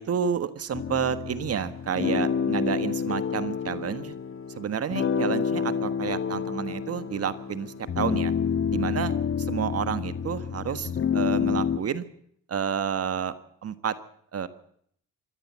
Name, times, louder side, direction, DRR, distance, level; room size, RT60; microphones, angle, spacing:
voice 1, 0.0-4.1 4.6-8.3 8.7-12.0 12.5-13.3 13.6-13.9 14.3-14.5, right 8 dB, 55° right, 12 dB, 1.5 m, -30 dB
sound 1, 0.7-11.8, left 7 dB, 45° left, 1.5 m, -28 dB
25.5 x 14.0 x 7.5 m, 0.66 s
cardioid pair, 90°, 30 cm